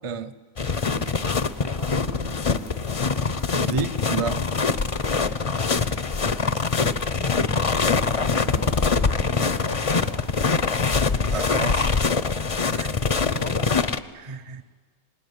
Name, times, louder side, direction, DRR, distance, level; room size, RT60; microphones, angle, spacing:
sound 1, 0.6-14.0, left 4 dB, 35° left, 0.6 m, -23 dB
voice 1, 1.6-2.2 7.9-10.1 13.1-13.7, equal, 90° right, -2 dB, 7.1 m, -38 dB
voice 2, 3.6-4.4 11.3-11.9 12.7-12.9 14.1-14.6, right 5 dB, 30° right, 11 dB, 0.6 m, -30 dB
25.0 x 19.5 x 9.5 m, 1.5 s
omnidirectional pair, 1.5 m